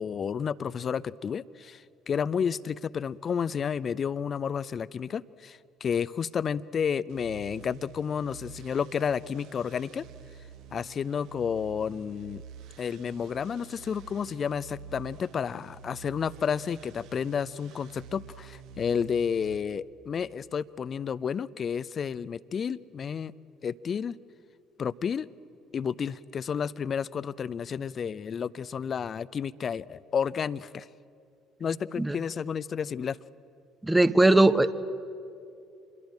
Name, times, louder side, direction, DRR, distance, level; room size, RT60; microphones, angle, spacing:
voice 1, 0.0-10.0 10.7-12.4 12.8-23.3 23.6-24.2 24.8-25.3 25.7-30.9 31.6-33.2, left 7 dB, 40° left, 19 dB, 0.6 m, -31 dB
sound 1, 7.1-19.6, right 6 dB, 60° right, 1.3 m, -48 dB
voice 2, 33.8-34.7, right 2 dB, 10° right, 14 dB, 1.1 m, -20 dB
27.0 x 22.0 x 8.9 m, 2.6 s
figure-of-eight pair, 50°, 0 cm